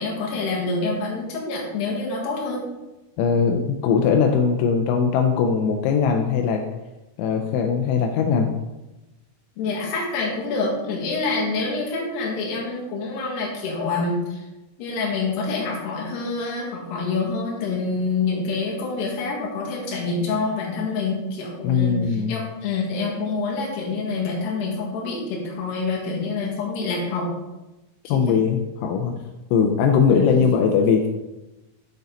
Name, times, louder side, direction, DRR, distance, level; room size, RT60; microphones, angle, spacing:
voice 1, 0.0-2.7 9.6-14.5 14.8-27.3 28.0-28.4 30.1-30.3, left 3 dB, 60° left, -2 dB, 3.4 m, -26 dB
voice 2, 3.2-6.6 7.2-8.5 21.6-22.3 28.1-29.1 29.5-31.1, left 6 dB, 85° left, 4 dB, 3.2 m, -20 dB
8.1 x 6.7 x 4.0 m, 1.0 s
omnidirectional pair, 5.9 m